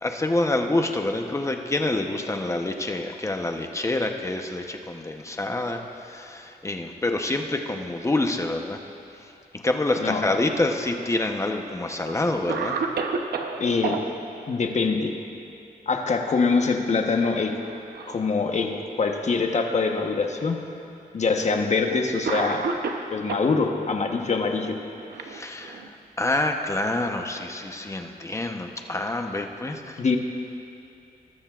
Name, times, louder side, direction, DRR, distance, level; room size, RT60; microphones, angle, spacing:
voice 1, 0.0-8.8 9.2-12.8 25.2-30.2, left 2 dB, 20° left, 4 dB, 0.9 m, -27 dB
voice 2, 10.0-10.4 13.6-14.0 14.5-15.1 15.9-17.5 18.1-20.6 21.1-22.6 23.1-24.8 30.0-30.2, left 4 dB, 45° left, 3 dB, 1.1 m, -24 dB
Cough, 10.7-11.5 12.1-12.2 12.5-14.0 15.9-16.3 16.6-16.8 17.6-18.3 19.1-19.2 20.2-20.3 21.4-21.6 22.2-23.5 24.5-25.9, right 5 dB, 85° right, 0.8 m, -31 dB
20.0 x 13.5 x 2.5 m, 2.7 s
wide cardioid pair, 110°, 16 cm